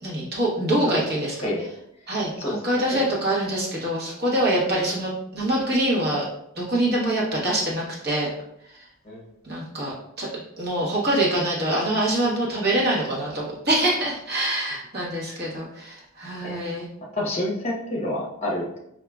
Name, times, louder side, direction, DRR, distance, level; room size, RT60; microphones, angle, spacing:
voice 1, 0.0-1.5 2.1-6.3 6.6-8.3 9.4-10.3 10.6-16.9, right 1 dB, 50° right, -5 dB, 1.2 m, -25 dB
voice 2, 17.1-18.8, left 1 dB, 30° left, -2 dB, 0.9 m, -28 dB
4.8 x 2.7 x 2.3 m, 0.78 s
head